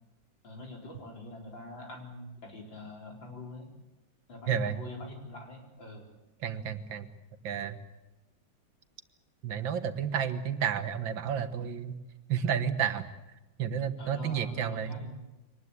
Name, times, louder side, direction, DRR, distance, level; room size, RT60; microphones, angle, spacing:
voice 1, 0.4-3.7 4.3-6.1 14.0-15.2, left 1 dB, 80° left, 1 dB, 5.0 m, -44 dB
voice 2, 6.4-7.1 7.4-7.8 9.4-12.0 12.3-13.1 13.6-15.0, right 8 dB, 85° right, 10 dB, 2.0 m, -31 dB
23.5 x 19.5 x 8.2 m, 1.0 s
omnidirectional pair, 2.0 m